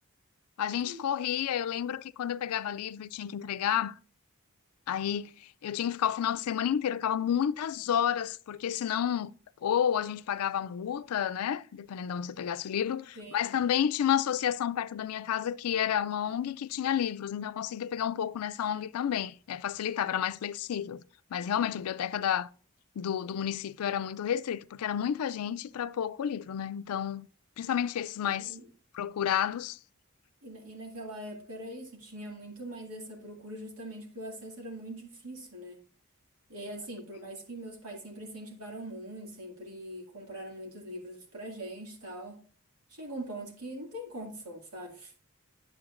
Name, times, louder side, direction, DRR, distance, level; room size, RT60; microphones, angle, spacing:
voice 1, 0.6-4.0 4.9-9.3 9.6-21.0 21.3-22.5 23.0-27.3 27.6-28.6 28.9-29.8, left 9 dB, 80° left, 0.4 m, -31 dB
voice 2, 13.2-13.6 28.2-28.7 30.4-35.8 36.5-42.4 42.9-45.2, right 1 dB, 90° right, 2.2 m, -42 dB
9.6 x 7.6 x 2.5 m
head